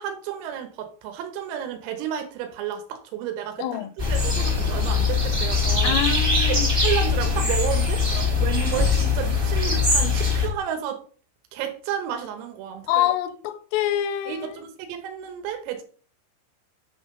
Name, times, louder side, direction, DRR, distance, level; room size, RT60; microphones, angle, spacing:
voice 1, 0.0-6.0 6.5-11.0 11.5-13.1 14.3-15.8, right 10 dB, 80° right, 3.8 m, -32 dB
voice 2, 3.6-3.9 5.8-6.7 12.9-14.5, left 12 dB, 85° left, 3.2 m, -26 dB
sound 1, 4.0-10.5, left 4 dB, 40° right, 0.7 m, -22 dB
9.8 x 5.3 x 5.5 m
omnidirectional pair, 5.9 m